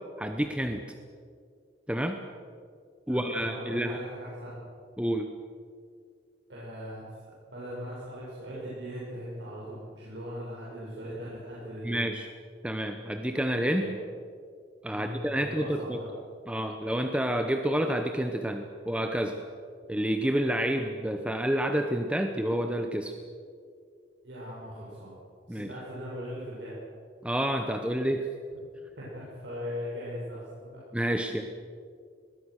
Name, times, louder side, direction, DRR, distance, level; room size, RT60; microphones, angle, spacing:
voice 1, 0.2-0.8 1.9-2.2 3.1-4.0 5.0-5.3 11.8-12.3 12.6-13.9 14.8-16.0 16.5-19.4 19.9-23.1 25.5-25.7 27.2-28.3 30.9-31.4, equal, 5° right, 5 dB, 0.9 m, -29 dB
voice 2, 3.1-4.6 6.5-7.0 7.4-12.1 13.7-14.0 14.9-16.1 24.2-25.1 25.5-26.7 29.0-30.8, equal, 75° right, -8 dB, 6.8 m, -39 dB
23.0 x 20.5 x 6.5 m, 2.2 s
head